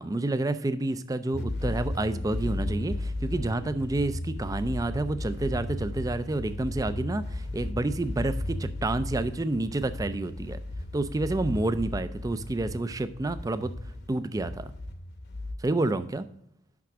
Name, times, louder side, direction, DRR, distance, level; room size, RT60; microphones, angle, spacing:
voice 1, 0.0-10.6 10.9-13.7 14.1-14.7 15.6-16.3, right 2 dB, 15° right, 12 dB, 0.3 m, -29 dB
sound 1, 1.3-15.5, left 1 dB, 50° left, 0.9 m, -35 dB
5.9 x 5.8 x 6.0 m, 0.75 s
head